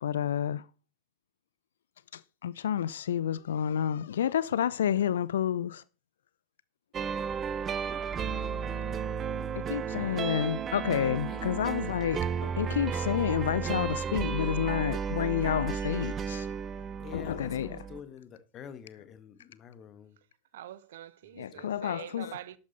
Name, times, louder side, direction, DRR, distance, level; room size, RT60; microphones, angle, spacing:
voice 1, 0.0-0.6 2.1-5.8 7.8-7.9 9.7-16.5 17.1-17.7 21.4-22.3, left 9 dB, 60° left, 0.4 m, -30 dB
sound 1, 6.9-18.0, right 7 dB, 25° right, 0.7 m, -33 dB
voice 2, 11.3-12.0 17.0-20.2 21.2-21.9, left 8 dB, 30° left, 1.5 m, -48 dB
voice 3, 20.5-22.6, right 12 dB, 55° right, 0.7 m, -44 dB
12.5 x 8.7 x 4.2 m
figure-of-eight pair, 90°, 0 cm